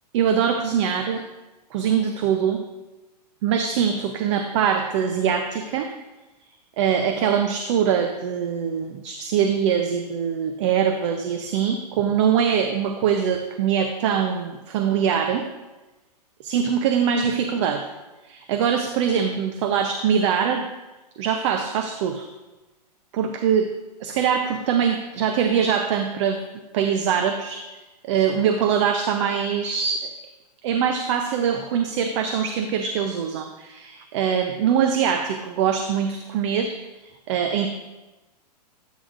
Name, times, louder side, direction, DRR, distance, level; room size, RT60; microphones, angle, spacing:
voice 1, 0.1-1.2 1.7-2.6 3.4-5.9 6.8-15.5 16.4-17.9 18.2-20.7 21.2-22.3 23.1-23.7 24.0-26.4 26.7-27.7 28.0-30.1 30.6-36.8 37.0-37.7, right 7 dB, 45° right, 6 dB, 0.7 m, -23 dB
13.5 x 8.4 x 2.6 m, 1.1 s
hypercardioid pair, 115°, 21 cm